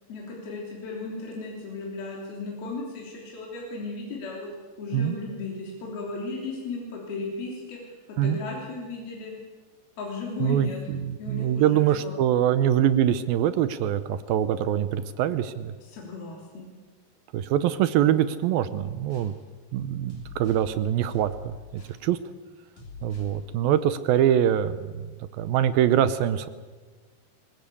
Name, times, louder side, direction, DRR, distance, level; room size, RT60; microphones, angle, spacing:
voice 1, 0.1-4.5 4.8-9.3 10.0-10.8 11.2-12.2 15.8-16.7, left 3 dB, 65° left, -2 dB, 5.0 m, -35 dB
voice 2, 10.4-15.7 17.3-19.3 19.7-22.2 23.0-25.0 25.4-26.5, right 10 dB, 75° right, 12 dB, 2.3 m, -24 dB
sound 1, 18.8-19.4 20.1-20.7 21.1-22.0 22.8-23.4, left 4 dB, 50° left, 4.7 m, -45 dB
21.5 x 20.5 x 8.5 m, 1.4 s
omnidirectional pair, 4.7 m